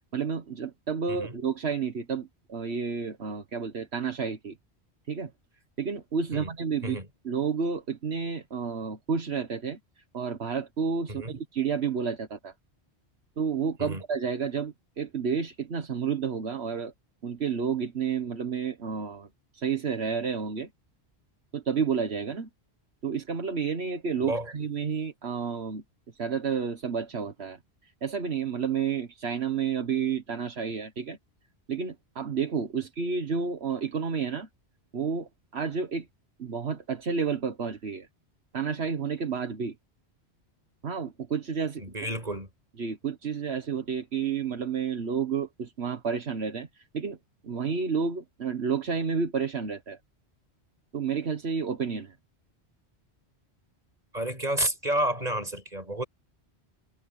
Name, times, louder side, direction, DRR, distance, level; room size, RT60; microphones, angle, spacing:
voice 1, 0.1-4.6 5.1-5.3 5.8-7.0 7.2-12.5 13.4-16.9 17.2-19.3 19.5-20.7 21.5-22.5 23.0-25.8 26.1-31.2 31.7-34.5 34.9-36.1 36.4-38.1 38.5-39.7 40.8-42.1 42.8-47.2 47.4-50.0 50.9-52.1, right 6 dB, 70° right, 1.6 m, -30 dB
voice 2, 41.8-42.5 54.1-56.0, right 1 dB, 40° right, 6.2 m, -30 dB
omnidirectional pair, 1.1 m